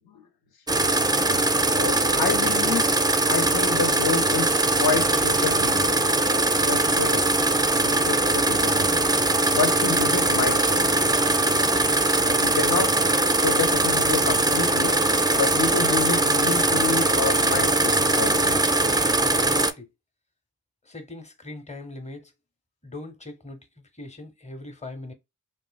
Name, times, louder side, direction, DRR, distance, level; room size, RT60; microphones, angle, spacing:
sound 1, 0.7-19.7, right 2 dB, 10° right, 0.4 m, -21 dB
voice 1, 1.6-2.8 3.3-5.9 6.6-7.3 7.8-9.1 9.5-10.9 12.2-13.0 13.4-15.0 15.3-18.6, left 5 dB, 60° left, 0.7 m, -28 dB
voice 2, 19.2-19.9 20.8-22.3 22.8-25.1, left 2 dB, 15° left, 0.9 m, -40 dB
3.1 x 2.5 x 2.3 m
cardioid pair, 45°, 41 cm